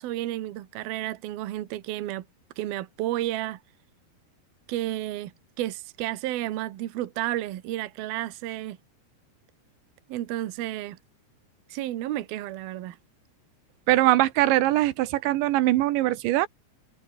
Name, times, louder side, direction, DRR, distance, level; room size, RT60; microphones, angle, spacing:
voice 1, 0.0-2.3 2.6-3.6 4.7-8.8 10.1-11.0 11.7-13.0, right 14 dB, 65° right, 3.0 m, -32 dB
voice 2, 13.9-16.5, right 16 dB, 85° right, 3.5 m, -22 dB
omnidirectional pair, 5.1 m